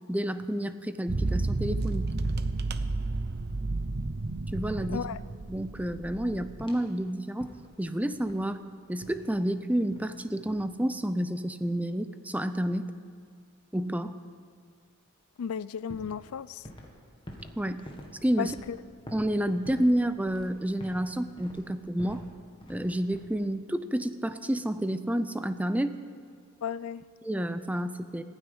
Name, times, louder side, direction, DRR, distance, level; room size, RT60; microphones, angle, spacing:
voice 1, 0.1-2.1 4.5-5.1 5.5-7.5 7.8-8.6 8.9-12.9 13.7-14.2 17.6-17.8 18.2-18.6 19.1-22.3 22.7-25.9 27.2-28.2, right 1 dB, 5° right, 10 dB, 0.5 m, -29 dB
sound 1, 1.1-6.6, right 2 dB, 45° right, 0.7 m, -31 dB
voice 2, 4.9-5.2 15.4-16.6 18.4-18.8 26.6-27.0, left 7 dB, 75° left, 18 dB, 0.4 m, -34 dB
sound 2, 6.6-6.9 7.4-7.8 8.1-8.6 9.0-9.3 9.9-10.2 10.5-10.7 15.4-15.5 15.9-17.0 17.3-21.1 21.4-22.3 22.6-22.9 23.1-23.5, equal, 20° left, 1.7 m, -47 dB
15.0 x 9.7 x 9.8 m, 2.1 s
head